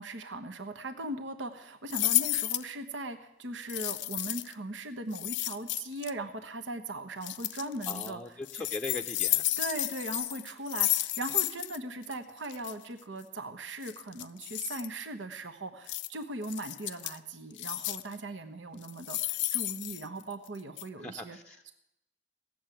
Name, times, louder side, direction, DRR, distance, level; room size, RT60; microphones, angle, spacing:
voice 1, 0.0-8.2 8.5-8.6 9.6-21.4 21.7-21.8, right 2 dB, 75° right, 8 dB, 1.1 m, -39 dB
sound 1, 1.9-2.7 3.7-4.5 5.1-6.1 7.2-8.1 8.5-11.8 12.0-12.1 12.4-12.7 13.8-14.9 15.9-16.1 16.4-17.2 17.6-18.1 18.8-20.5 20.8-20.9, left 16 dB, 70° left, 0.5 m, -32 dB
voice 2, 7.9-9.5 21.0-21.7, left 2 dB, 5° left, 2 dB, 0.7 m, -40 dB
17.0 x 7.1 x 9.1 m, 0.83 s
head